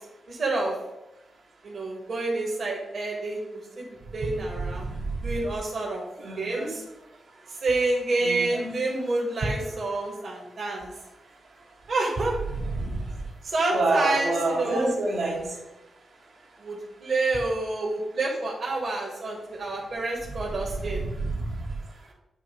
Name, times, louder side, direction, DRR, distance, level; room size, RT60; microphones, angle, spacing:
voice 1, 0.3-0.8 1.6-4.9 5.2-6.0 6.4-6.8 7.6-10.9 11.9-12.4 13.4-14.9 16.6-21.0, right 2 dB, 60° right, -2 dB, 1.5 m, -28 dB
voice 2, 6.2-6.7 8.2-8.7 12.5-13.0 13.7-15.4 20.8-21.4, right 2 dB, 85° right, -4 dB, 1.8 m, -28 dB
8.6 x 3.0 x 5.2 m, 0.95 s
cardioid pair, 95°, 0 cm